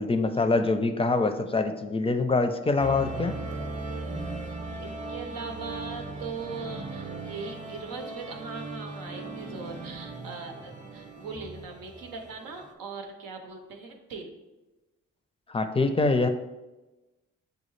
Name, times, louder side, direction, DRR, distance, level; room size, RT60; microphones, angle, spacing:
voice 1, 0.0-3.3 15.5-16.3, left 3 dB, 20° left, 8 dB, 0.4 m, -24 dB
sound 1, 2.8-12.7, right 3 dB, 20° right, 0.7 m, -38 dB
voice 2, 4.8-14.3, right 4 dB, 90° right, 3 dB, 0.7 m, -40 dB
6.5 x 2.3 x 3.1 m, 1.1 s
cardioid pair, 55°, 33 cm